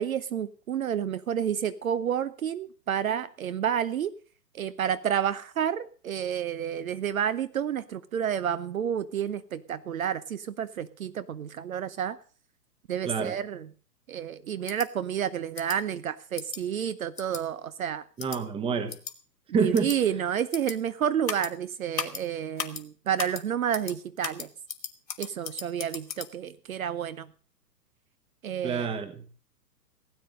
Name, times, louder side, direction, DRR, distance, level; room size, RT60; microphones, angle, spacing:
voice 1, 0.0-4.1 4.5-12.2 12.9-13.7 14.1-18.0 19.5-24.5 25.2-27.3 28.4-28.9, right 9 dB, 55° right, 0.9 m, -30 dB
sound 1, 14.7-14.9 15.5-15.8 16.4-16.6 17.2-17.4 18.2-18.4 18.9-19.1 19.7-20.0 20.5-20.7 21.2-21.5 21.9-22.2 22.6-22.8 23.2-23.4 23.7-23.9 24.2-26.3, left 6 dB, 80° left, 2.0 m, -36 dB
voice 2, 18.2-18.9 19.5-19.9 28.6-29.3, right 5 dB, 10° right, 1.2 m, -27 dB
16.5 x 9.3 x 6.5 m
figure-of-eight pair, 120°, 50 cm